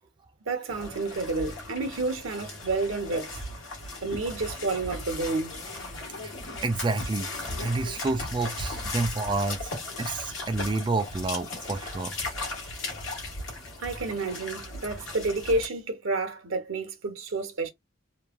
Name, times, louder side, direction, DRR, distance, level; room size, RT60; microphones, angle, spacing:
voice 1, 0.5-3.4 4.0-5.8 13.8-17.7, right 3 dB, 90° right, 0.9 m, -30 dB
sound 1, 0.7-15.7, left 2 dB, 80° left, 1.2 m, -37 dB
voice 2, 6.6-7.3 7.6-9.7 10.0-12.1, right 3 dB, 25° right, 0.3 m, -29 dB
3.1 x 2.3 x 2.2 m
head